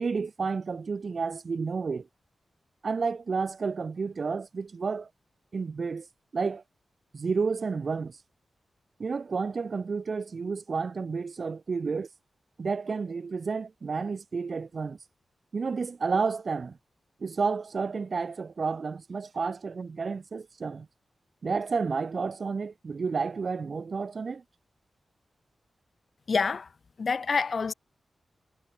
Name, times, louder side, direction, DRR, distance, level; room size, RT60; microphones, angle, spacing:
voice 1, 0.0-2.1 2.8-5.1 5.5-6.1 6.3-6.6 7.1-8.2 9.0-12.1 12.6-15.0 15.5-16.8 17.2-20.9 21.4-24.4, right 5 dB, 50° right, 4.5 m, -31 dB
voice 2, 26.3-26.7 27.0-27.7, left 5 dB, 50° left, 4.3 m, -27 dB
wide cardioid pair, 115°, 0 cm